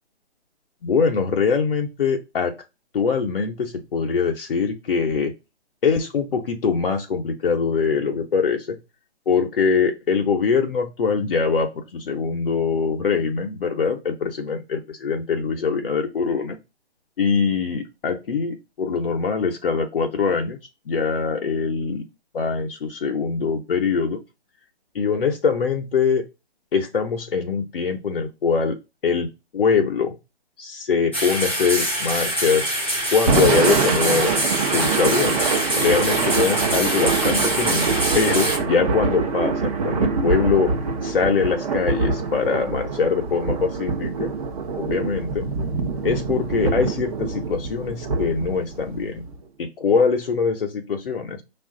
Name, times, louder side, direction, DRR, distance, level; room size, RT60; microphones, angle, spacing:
voice 1, 0.8-2.5 2.9-5.3 5.8-8.8 9.3-16.6 17.2-20.6 20.9-22.1 22.3-24.2 24.9-26.3 26.7-28.8 29.0-30.2 30.6-32.7 33.1-34.3 34.7-35.4 35.8-40.7 41.0-44.3 44.8-45.5 46.0-49.2 49.6-51.4, left 5 dB, 55° left, 2 dB, 0.8 m, -23 dB
sound 1, 31.1-38.6, right 1 dB, 10° left, 0.4 m, -25 dB
Thunder / Rain, 33.1-49.4, right 5 dB, 35° right, 0.8 m, -24 dB
5.6 x 2.4 x 3.7 m, 0.27 s
hypercardioid pair, 155°, 33 cm